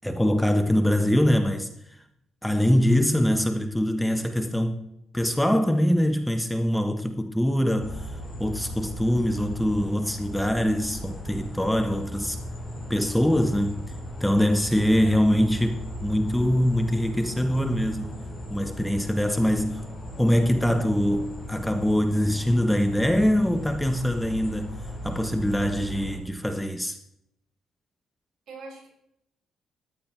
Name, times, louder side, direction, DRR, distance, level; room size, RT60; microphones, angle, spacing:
voice 1, 0.0-1.7 2.4-4.8 5.1-8.1 8.4-12.4 12.9-13.8 14.2-18.2 18.5-19.8 20.2-24.7 25.0-27.0, equal, 5° left, 1.2 m, -23 dB
sound 1, 7.8-26.2, equal, 25° left, 5.8 m, -37 dB
voice 2, 14.7-15.3 28.5-28.9, right 3 dB, 65° right, 6.9 m, -43 dB
14.0 x 11.5 x 4.6 m
cardioid pair, 90°, 0 cm